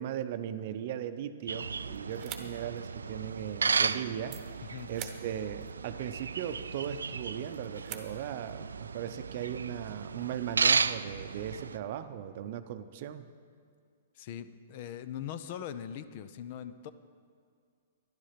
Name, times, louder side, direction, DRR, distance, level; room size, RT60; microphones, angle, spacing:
voice 1, 0.0-4.4 4.9-13.3, right 10 dB, 50° right, 10 dB, 0.6 m, -38 dB
sound 1, 1.5-11.8, right 5 dB, 85° right, 0.3 m, -34 dB
sound 2, 1.9-8.6, right 10 dB, 35° right, 1.0 m, -50 dB
voice 2, 14.1-16.9, left 9 dB, 50° left, 13 dB, 0.6 m, -41 dB
11.0 x 11.0 x 5.8 m, 2.2 s
hypercardioid pair, 120°, 0 cm